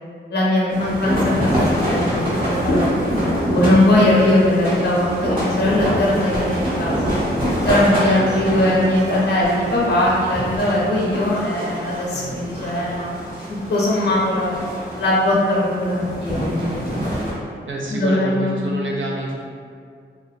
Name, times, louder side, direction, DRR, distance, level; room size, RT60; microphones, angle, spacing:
voice 1, 0.3-7.0 7.6-13.2 13.5-14.6 15.0-16.8 17.9-18.6, left 1 dB, 55° left, -4 dB, 0.5 m, -20 dB
sound 1, 0.7-17.3, equal, 40° right, 1.0 m, -25 dB
voice 2, 8.0-8.4 12.1-12.4 17.7-19.4, right 2 dB, 70° right, -2 dB, 0.5 m, -28 dB
2.4 x 2.3 x 2.2 m, 2.3 s
cardioid pair, 65°, 21 cm